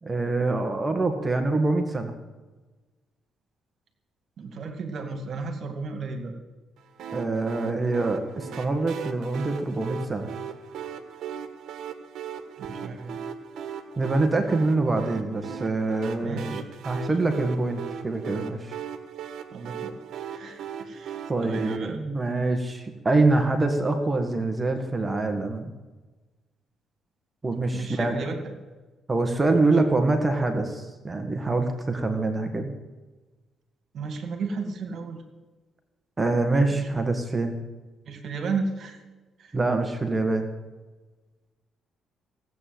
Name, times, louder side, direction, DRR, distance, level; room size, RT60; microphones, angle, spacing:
voice 1, 0.0-2.1 7.1-10.3 14.0-16.6 16.9-18.8 21.3-25.7 27.4-28.2 29.1-32.7 36.2-37.5 39.5-40.5, right 2 dB, 20° right, 5 dB, 1.7 m, -25 dB
voice 2, 4.4-6.3 12.6-13.2 16.2-17.1 17.4-17.6 19.5-22.0 27.7-28.5 29.6-29.8 33.9-35.2 36.7-36.9 38.1-39.0 39.4-39.6, right 4 dB, 60° right, 5 dB, 2.2 m, -34 dB
sound 1, 7.0-21.8, right 7 dB, 75° right, 1.5 m, -38 dB
17.0 x 8.5 x 7.8 m, 1.2 s
cardioid pair, 105°, 0 cm